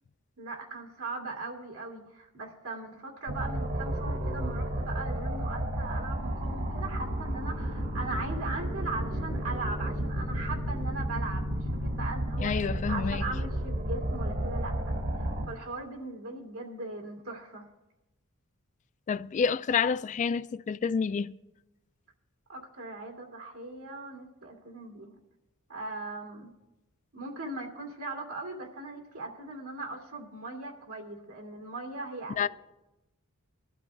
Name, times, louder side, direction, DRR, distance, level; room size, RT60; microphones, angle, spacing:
voice 1, 0.4-17.7 22.5-25.2 25.7-26.5 27.1-32.5, right 3 dB, 80° right, 2.4 m, -39 dB
sound 1, 3.3-15.5, equal, 55° right, 1.5 m, -32 dB
voice 2, 12.4-13.2 19.1-21.4 32.4-32.5, left 6 dB, 35° left, 0.3 m, -28 dB
22.0 x 12.0 x 2.3 m
head